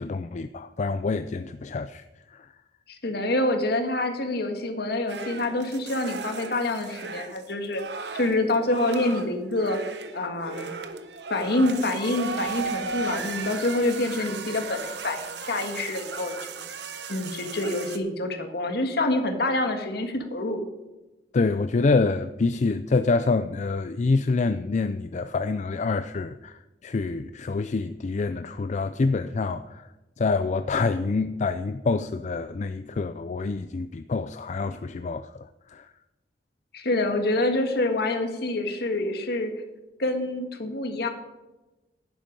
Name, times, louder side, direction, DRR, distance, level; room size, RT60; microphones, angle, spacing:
voice 1, 0.0-2.5 21.3-29.9 30.2-35.9, left 3 dB, 40° left, 0.4 m, -26 dB
voice 2, 2.9-7.8 8.1-9.8 10.1-10.7 11.3-16.5 17.1-20.6 36.7-39.5 40.0-41.1, left 2 dB, 65° left, 1.7 m, -26 dB
sound 1, 5.1-18.0, right 4 dB, 70° right, 1.1 m, -36 dB
11.5 x 10.0 x 5.3 m
head